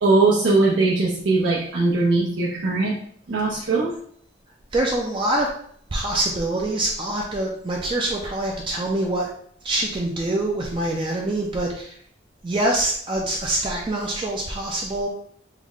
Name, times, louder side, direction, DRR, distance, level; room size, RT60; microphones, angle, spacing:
voice 1, 0.0-2.9 3.3-3.9, right 3 dB, 85° right, -7 dB, 0.7 m, -20 dB
voice 2, 4.7-5.5 5.9-9.3 9.6-12.0 12.4-15.1, right 1 dB, 25° right, -1 dB, 0.4 m, -25 dB
3.3 x 2.1 x 3.7 m, 0.62 s
head